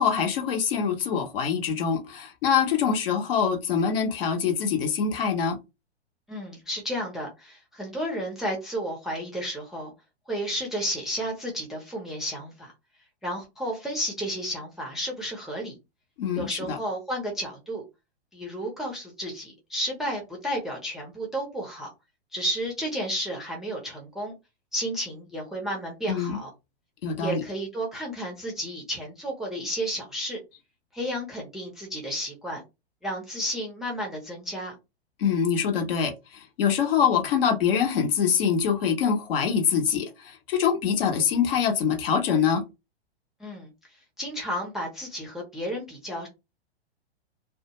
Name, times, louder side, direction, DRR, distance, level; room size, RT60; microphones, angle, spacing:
voice 1, 0.0-5.6 16.2-16.8 26.1-26.4 27.0-27.4 35.2-42.6, left 7 dB, 60° left, 0.9 m, -24 dB
voice 2, 6.3-9.9 10.3-12.7 13.2-15.8 16.3-17.8 18.3-21.9 22.3-24.3 24.7-26.5 27.2-30.4 30.9-32.6 33.0-34.7 43.4-43.7 44.2-46.3, equal, ahead, 0.5 m, -32 dB
2.2 x 2.1 x 2.8 m
hypercardioid pair, 115°, 33 cm